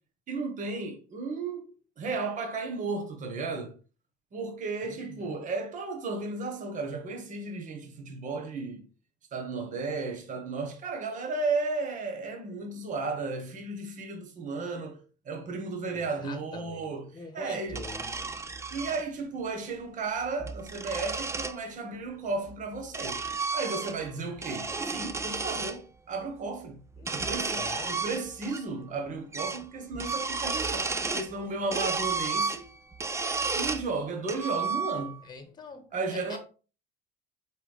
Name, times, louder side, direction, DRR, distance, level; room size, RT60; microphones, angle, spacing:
voice 1, 0.3-1.7 2.0-3.7 4.3-8.8 9.3-17.9 18.2-18.3 18.7-23.2 23.5-26.8 27.1-32.6 33.5-35.2 35.9-36.4, right 3 dB, 40° right, 1.5 m, -34 dB
voice 2, 4.8-5.4 15.9-18.2 27.0-28.0 35.2-36.4, left 4 dB, 20° left, 1.4 m, -46 dB
sound 1, 17.7-19.0 20.2-21.6 22.5-24.1 24.4-25.8 26.9-28.6 28.9-29.0 29.3-29.7 29.9-31.3 31.7-33.9 34.3-35.2, right 4 dB, 15° right, 0.5 m, -32 dB
5.8 x 4.8 x 3.6 m
cardioid pair, 125°, 20 cm